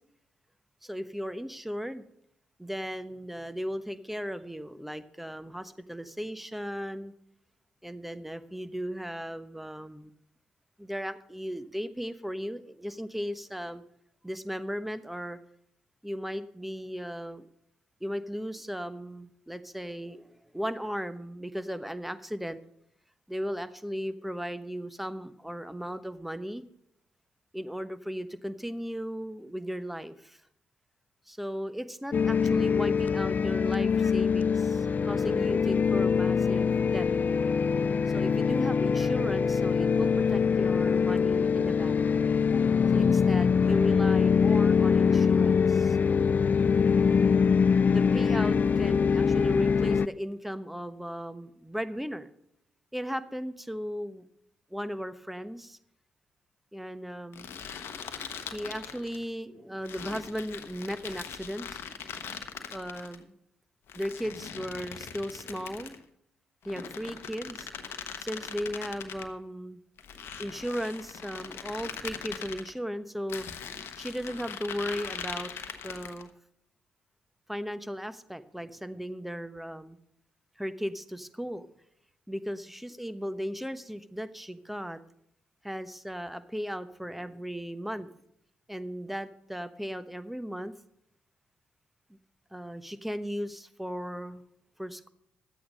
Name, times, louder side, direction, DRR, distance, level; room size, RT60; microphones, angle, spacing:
voice 1, 0.8-2.0 2.6-7.1 7.8-10.1 10.8-13.8 14.2-15.4 16.0-17.5 18.0-22.6 23.3-26.6 27.5-30.4 31.3-37.1 38.1-42.0 42.9-46.5 47.9-52.3 52.9-54.3 54.7-55.8 56.7-57.5 58.5-61.8 62.7-63.3 63.9-66.0 66.6-67.7 68.2-69.8 70.1-73.5 74.0-75.5 75.8-76.3 77.5-80.0 80.6-81.7 82.3-85.0 85.6-88.1 88.7-90.7 92.5-94.4 94.8-95.1, equal, 5° right, 11 dB, 1.0 m, -36 dB
sound 1, 32.1-50.1, left 6 dB, 45° left, 0.3 m, -24 dB
sound 2, 57.3-59.2 59.8-63.2 63.9-66.0 66.6-69.3 70.0-72.7 73.3-76.3, left 7 dB, 70° left, 1.0 m, -41 dB
12.0 x 8.4 x 5.4 m, 0.75 s
hypercardioid pair, 45°, 4 cm